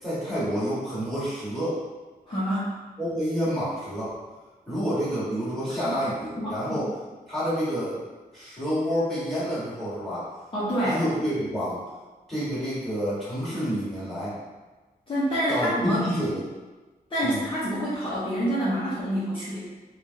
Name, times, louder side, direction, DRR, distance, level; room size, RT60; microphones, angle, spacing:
voice 1, 0.0-1.8 3.0-4.1 4.7-6.9 7.3-8.0 8.3-10.2 10.8-11.8 12.3-14.4 15.5-16.4 17.2-17.4, equal, ahead, -12 dB, 1.4 m, -28 dB
voice 2, 2.3-2.7 5.8-6.0 6.4-6.9 10.5-11.0 15.1-16.0 17.1-19.6, equal, 30° left, -11 dB, 0.8 m, -27 dB
3.4 x 2.4 x 2.7 m, 1.2 s
wide cardioid pair, 135°, 16 cm